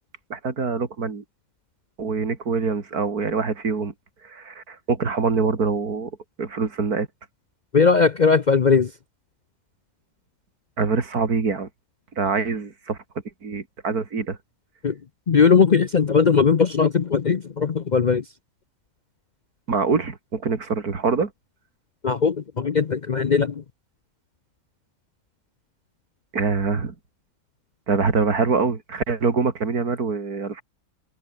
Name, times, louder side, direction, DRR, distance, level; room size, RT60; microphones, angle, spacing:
voice 1, 0.3-1.2 2.0-3.9 4.2-6.1 6.4-7.1 10.8-11.7 12.2-13.0 13.4-14.4 19.7-21.3 26.3-26.9 27.9-30.6, right 4 dB, 85° right, 3.1 m, -24 dB
voice 2, 7.7-8.9 14.8-15.0 15.3-18.2 22.0-23.6, left 5 dB, 45° left, 0.6 m, -19 dB
omnidirectional pair, 1.6 m